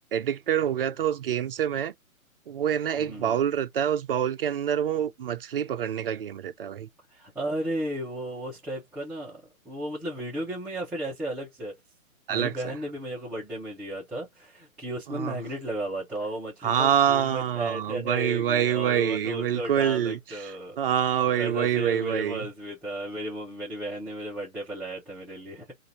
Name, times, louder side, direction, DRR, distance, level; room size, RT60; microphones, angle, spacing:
voice 1, 0.1-1.9 2.5-6.9 12.3-12.5 15.1-15.3 16.6-20.2 20.8-22.4, right 9 dB, 40° right, 0.6 m, -26 dB
voice 2, 3.0-3.4 7.1-11.8 12.3-20.8 21.4-25.7, right 1 dB, 5° right, 0.7 m, -34 dB
3.7 x 2.6 x 4.1 m
figure-of-eight pair, 130°, 42 cm